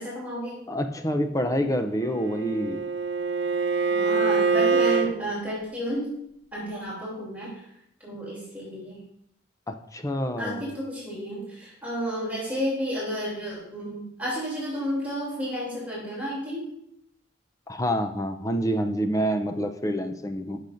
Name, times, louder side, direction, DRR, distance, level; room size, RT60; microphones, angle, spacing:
voice 1, 0.0-0.6 3.9-6.1 6.5-7.6 8.0-9.0 10.4-16.7, equal, 10° right, -7 dB, 2.9 m, -31 dB
voice 2, 0.7-2.9 9.7-10.7 17.7-20.6, equal, 15° left, 7 dB, 0.5 m, -27 dB
Bowed string instrument, 1.9-5.1, right 4 dB, 60° right, 0.6 m, -24 dB
14.0 x 6.5 x 2.6 m, 0.75 s
head